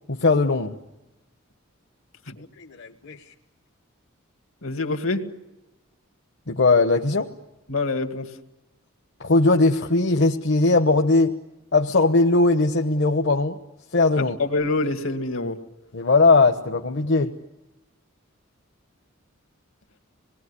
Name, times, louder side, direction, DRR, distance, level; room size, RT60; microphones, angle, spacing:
voice 1, 0.1-0.7 2.4-3.2 6.5-7.3 9.2-11.3 11.7-13.6 13.9-14.4 15.9-17.3, left 3 dB, 60° left, 3 dB, 1.2 m, -19 dB
voice 2, 4.6-5.2 7.7-8.3 14.2-15.6, left 3 dB, 75° left, 6 dB, 2.3 m, -26 dB
27.5 x 20.5 x 9.9 m, 1.0 s
head